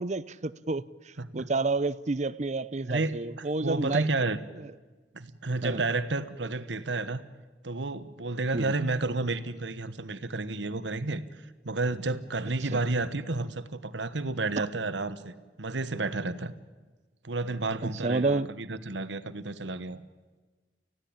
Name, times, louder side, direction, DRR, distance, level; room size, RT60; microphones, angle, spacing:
voice 1, 0.0-4.1 4.6-4.7 5.6-5.8 8.5-8.7 12.6-12.8 14.6-14.7 17.8-18.5, right 3 dB, 40° right, 0.7 m, -30 dB
voice 2, 3.6-4.4 5.1-7.2 7.6-11.2 11.6-16.5 17.2-20.0, right 3 dB, 80° right, 1.3 m, -31 dB
30.0 x 16.0 x 8.8 m
head